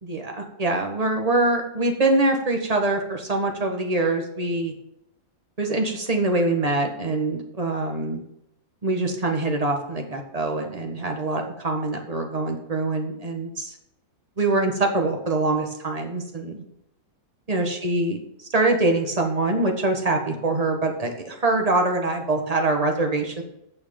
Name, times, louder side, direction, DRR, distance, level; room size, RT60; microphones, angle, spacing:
voice 1, 0.0-4.7 5.6-8.2 8.8-13.7 14.4-16.6 17.5-18.2 18.5-23.4, right 2 dB, 20° right, 3 dB, 1.5 m, -24 dB
8.7 x 6.4 x 7.0 m, 0.80 s
omnidirectional pair, 2.0 m